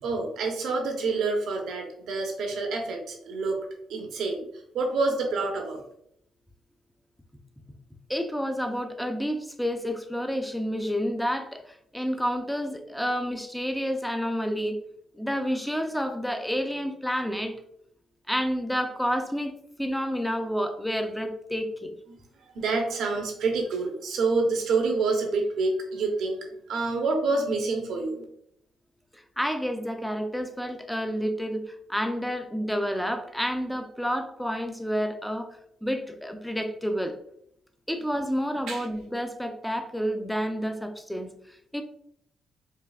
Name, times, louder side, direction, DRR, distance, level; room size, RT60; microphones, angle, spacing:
voice 1, 0.0-4.5 4.7-5.8 22.4-26.4 26.7-28.2 38.7-38.9, right 3 dB, 75° right, 2 dB, 0.8 m, -27 dB
voice 2, 8.1-14.8 15.1-17.6 18.3-21.9 29.1-35.5 35.8-37.2 37.9-41.8, equal, ahead, 6 dB, 0.5 m, -29 dB
4.6 x 2.5 x 2.3 m, 0.71 s
cardioid pair, 90°, 0 cm